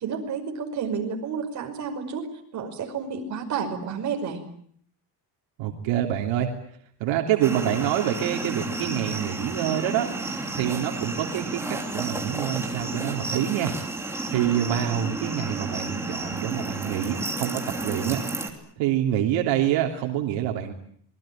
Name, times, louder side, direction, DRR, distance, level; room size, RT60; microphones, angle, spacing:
voice 1, 0.0-2.3 2.5-4.4, right 6 dB, 40° right, 3 dB, 5.7 m, -30 dB
voice 2, 5.6-6.5 7.0-10.1 10.5-13.8 14.3-18.2 18.8-20.7, right 11 dB, 80° right, 2 dB, 3.2 m, -26 dB
sound 1, 7.4-18.5, right 2 dB, 5° right, 3.0 m, -32 dB
26.5 x 21.0 x 8.9 m, 0.64 s
cardioid pair, 175°, 45 cm